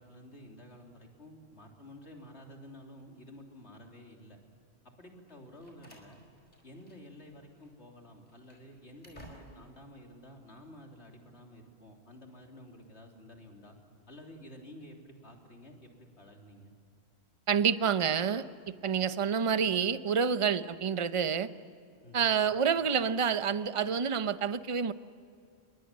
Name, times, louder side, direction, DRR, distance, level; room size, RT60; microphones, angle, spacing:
voice 1, 0.0-4.4 5.0-6.2 6.6-13.8 14.1-16.7 22.0-22.3, left 1 dB, 85° left, 1 dB, 3.8 m, -51 dB
Slam, 5.3-7.3 7.5-7.7 8.2-9.8, equal, 40° left, 5.1 m, -56 dB
voice 2, 17.5-21.5 22.1-24.9, right 7 dB, 35° right, 12 dB, 0.7 m, -28 dB
30.0 x 23.0 x 7.5 m, 2.4 s
omnidirectional pair, 1.1 m